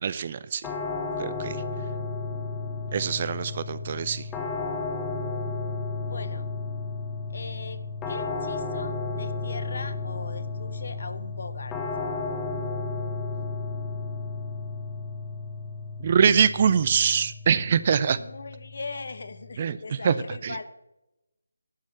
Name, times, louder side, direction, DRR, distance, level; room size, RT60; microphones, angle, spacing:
voice 1, 0.0-0.6 1.2-1.6 2.9-4.2 16.0-18.2 19.6-20.1 20.4-20.6, right 7 dB, 30° right, 16 dB, 0.4 m, -23 dB
sound 1, 0.6-19.5, left 3 dB, 10° left, 1.0 m, -33 dB
voice 2, 6.0-6.5 7.3-11.8 18.1-20.6, left 3 dB, 50° left, 12 dB, 0.9 m, -39 dB
11.5 x 6.3 x 7.0 m, 0.91 s
figure-of-eight pair, 155°, 0 cm